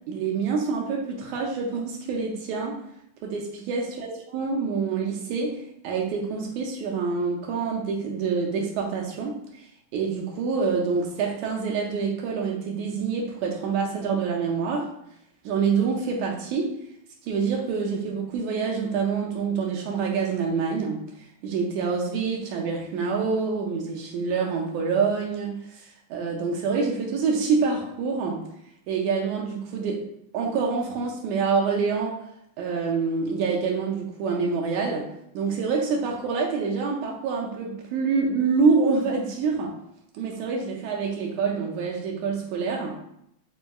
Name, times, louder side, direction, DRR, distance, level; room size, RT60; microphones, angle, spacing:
voice 1, 0.1-2.8 3.2-14.9 15.4-16.8 17.2-28.5 28.9-30.1 30.3-32.2 32.6-39.8 40.1-43.0, right 5 dB, 80° right, 0 dB, 1.8 m, -26 dB
5.2 x 2.6 x 2.3 m, 0.75 s
omnidirectional pair, 3.6 m